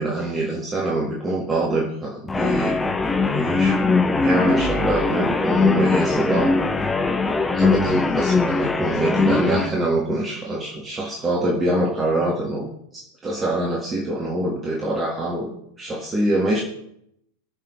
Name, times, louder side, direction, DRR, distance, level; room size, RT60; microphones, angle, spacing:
voice 1, 0.0-2.8 3.3-6.6 7.5-15.5 15.8-16.6, right 1 dB, 20° right, -2 dB, 1.7 m, -24 dB
sound 1, 2.3-9.7, left 3 dB, 10° left, 0.9 m, -21 dB
20.0 x 6.7 x 3.3 m, 0.74 s
figure-of-eight pair, 90°, 0 cm